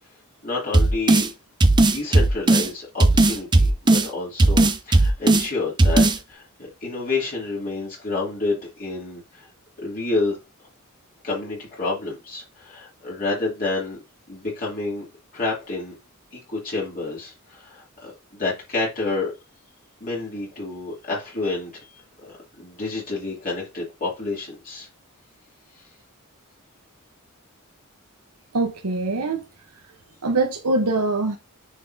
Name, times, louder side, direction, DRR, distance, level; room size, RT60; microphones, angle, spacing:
voice 1, 0.4-1.3 1.8-9.5 9.8-10.4 11.2-14.0 14.3-15.0 15.3-16.0 16.3-19.3 20.0-21.9 22.2-24.9, left 3 dB, 40° left, 2.9 m, -29 dB
sound 1, 0.7-1.3 1.6-2.7 3.0-4.1 4.4-5.5 5.8-6.2, right 2 dB, 20° right, 0.6 m, -16 dB
voice 2, 28.5-29.4 30.2-31.4, right 3 dB, 85° right, 1.0 m, -23 dB
9.3 x 4.1 x 2.7 m
head